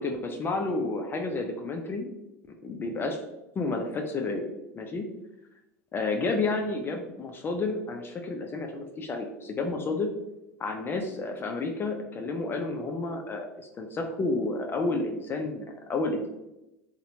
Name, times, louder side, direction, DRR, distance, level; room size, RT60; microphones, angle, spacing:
voice 1, 0.0-2.1 2.6-3.2 3.6-4.5 4.8-5.1 5.9-10.1 10.6-13.5 13.8-16.3, left 3 dB, 25° left, 3 dB, 0.4 m, -30 dB
2.7 x 2.1 x 2.6 m, 0.92 s
hypercardioid pair, 85°, 8 cm